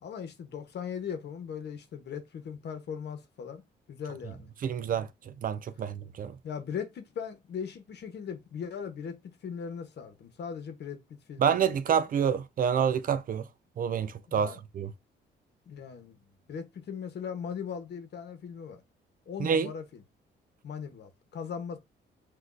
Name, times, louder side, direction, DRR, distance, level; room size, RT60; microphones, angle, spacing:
voice 1, 0.0-3.6 3.9-4.5 6.4-11.0 11.3-11.8 14.3-14.6 15.7-16.2 16.5-18.8 19.3-20.0 20.6-21.8, left 7 dB, 60° left, 1.0 m, -39 dB
voice 2, 4.6-5.1 5.4-6.3 11.4-13.4 13.8-14.9 19.4-19.7, right 7 dB, 45° right, 0.4 m, -27 dB
6.0 x 2.5 x 2.6 m
cardioid pair, 90°, 20 cm